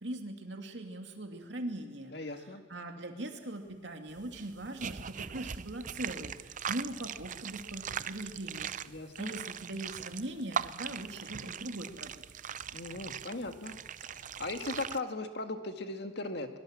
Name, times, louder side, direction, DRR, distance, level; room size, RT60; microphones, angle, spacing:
voice 1, 0.0-2.1 2.4-8.7 9.2-12.1, right 1 dB, 75° right, 4 dB, 2.7 m, -41 dB
voice 2, 2.1-2.6 8.9-9.3 12.7-13.8 14.0-16.5, left 2 dB, 65° left, 6 dB, 2.0 m, -38 dB
sound 1, 4.1-15.0, right 7 dB, 45° right, 0.6 m, -40 dB
22.5 x 22.0 x 7.5 m, 1.3 s
head